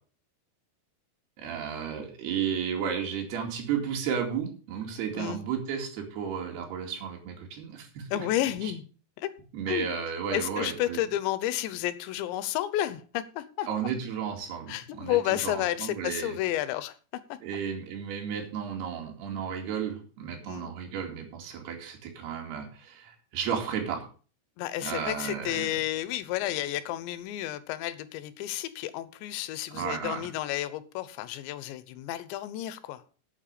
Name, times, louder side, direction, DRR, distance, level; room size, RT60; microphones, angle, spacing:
voice 1, 1.4-8.3 8.6-8.7 9.5-11.0 13.7-16.4 17.4-24.0 24.8-25.8 29.7-30.3, right 7 dB, 65° right, 4.3 m, -33 dB
voice 2, 8.1-8.9 9.2-9.3 9.7-9.9 10.3-13.7 14.7-17.0 17.3-17.4 20.5-20.7 24.6-33.0, left 13 dB, 85° left, 3.2 m, -31 dB
9.0 x 8.2 x 6.7 m
omnidirectional pair, 5.1 m